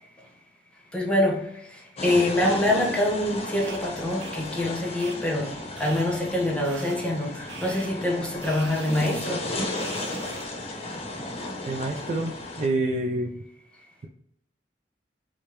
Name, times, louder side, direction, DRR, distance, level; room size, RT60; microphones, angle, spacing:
voice 1, 0.9-5.5 5.8-9.4, left 1 dB, 5° left, 0.8 m, -25 dB
sound 1, 2.0-12.7, left 1 dB, 35° left, 0.8 m, -34 dB
sound 2, 3.6-3.8 4.2-4.3 5.0-5.2 5.8-6.1 6.6-7.0 7.5-7.9 8.4-9.2 9.8-10.5, right 5 dB, 85° right, 0.6 m, -43 dB
voice 2, 11.7-12.3 12.6-13.3, right 2 dB, 40° right, 0.4 m, -26 dB
4.9 x 2.1 x 2.9 m
head